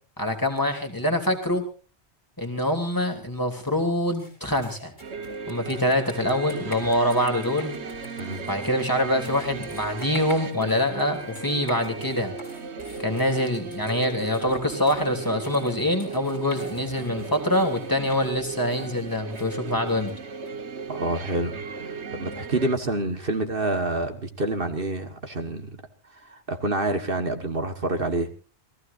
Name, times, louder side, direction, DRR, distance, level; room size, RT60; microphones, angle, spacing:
voice 1, 0.2-1.6 2.4-4.9 5.5-7.7 8.5-12.3 13.0-20.1, left 1 dB, 20° left, 3 dB, 3.2 m, -25 dB
sound 1, 4.1-20.5, left 1 dB, 45° left, 5.3 m, -47 dB
sound 2, 5.0-22.7, right 4 dB, 80° right, 1.6 m, -36 dB
voice 2, 20.9-25.8 26.2-28.3, right 2 dB, 55° right, 7 dB, 1.8 m, -28 dB
27.5 x 18.0 x 2.6 m, 0.37 s
omnidirectional pair, 1.1 m